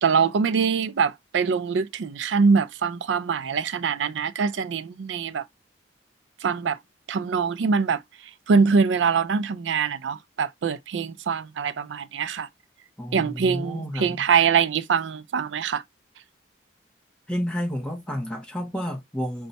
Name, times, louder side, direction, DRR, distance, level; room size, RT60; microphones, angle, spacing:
voice 1, 0.0-5.4 6.4-6.8 7.1-8.0 8.5-12.5 13.1-15.8, right 5 dB, 75° right, 0.4 m, -23 dB
voice 2, 13.0-14.2 17.3-19.5, equal, 5° left, 0.8 m, -30 dB
5.3 x 2.3 x 4.0 m
head